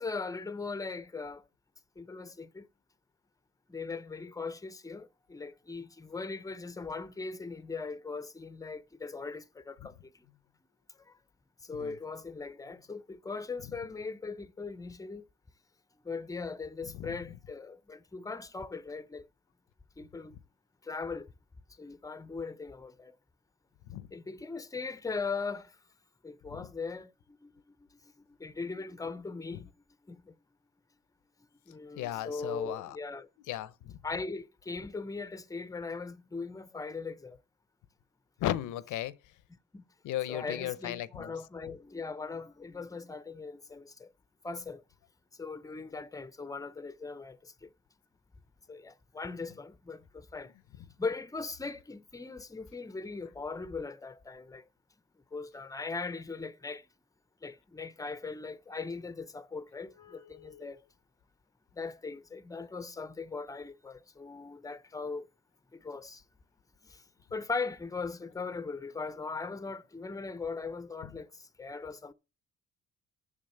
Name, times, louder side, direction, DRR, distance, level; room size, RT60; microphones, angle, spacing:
voice 1, 0.0-1.4 2.0-2.7 3.7-10.2 11.1-11.2 11.6-15.2 16.0-19.2 20.0-20.4 20.8-21.3 21.8-23.2 24.1-25.8 26.2-27.5 27.9-28.0 28.4-29.7 30.1-30.3 31.7-33.3 34.0-37.4 39.5-39.8 40.3-44.1 44.4-44.8 45.4-47.7 48.7-50.5 51.0-54.6 55.3-56.9 57.4-60.8 61.8-65.3 65.7-66.2 66.8-67.0 67.3-72.1, left 4 dB, 10° left, 0.6 m, -39 dB
voice 2, 16.9-17.4 23.9-24.1 26.5-26.7 29.5-29.6 32.0-33.0 33.5-33.9 38.4-39.1 40.0-41.4 60.0-60.8 71.0-71.2, left 13 dB, 80° left, 0.7 m, -37 dB
7.5 x 6.2 x 6.6 m
cardioid pair, 90°, 30 cm